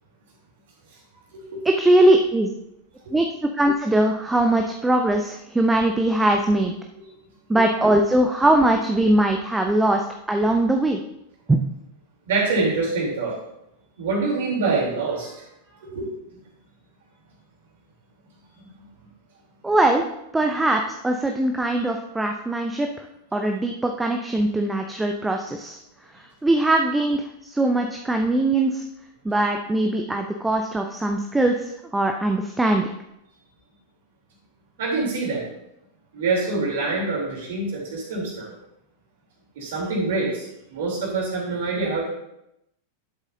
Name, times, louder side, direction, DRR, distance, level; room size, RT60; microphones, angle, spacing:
voice 1, 1.6-2.5 3.1-6.7 7.5-11.0 11.5-11.8 19.6-20.0 20.3-23.1 23.3-25.8 26.1-28.8 29.2-32.9, right 1 dB, 10° right, 4 dB, 0.7 m, -21 dB
voice 2, 12.3-13.4 14.0-15.4 15.8-16.1 18.6-18.7 34.8-35.5 36.1-38.6 39.6-42.1, right 3 dB, 55° right, -3 dB, 3.6 m, -25 dB
11.5 x 8.0 x 2.8 m, 0.84 s
figure-of-eight pair, 90°, 0 cm